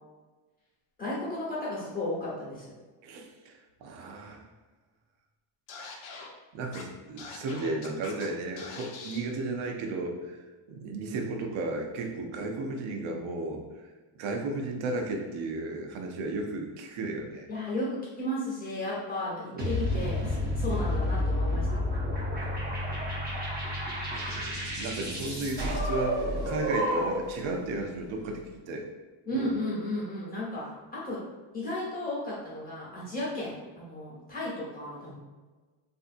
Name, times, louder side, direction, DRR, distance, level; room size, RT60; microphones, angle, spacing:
voice 1, 1.0-2.8 17.5-21.8 29.2-30.7 30.9-31.2 31.5-35.2, left 1 dB, 20° left, -7 dB, 0.9 m, -34 dB
voice 2, 3.0-4.5 6.1-6.3 6.5-13.9 14.2-17.5 19.5-19.8 24.1-28.9 29.3-29.6, right 2 dB, 70° right, 2 dB, 0.6 m, -34 dB
Scratching (performance technique), 5.7-6.3 6.7-6.8 7.2-8.3 8.6-9.2, left 4 dB, 70° left, 0.6 m, -43 dB
sound 1, 19.6-27.4, left 1 dB, 20° right, 0.5 m, -30 dB
3.4 x 2.6 x 2.5 m, 1.3 s
cardioid pair, 170°, 49 cm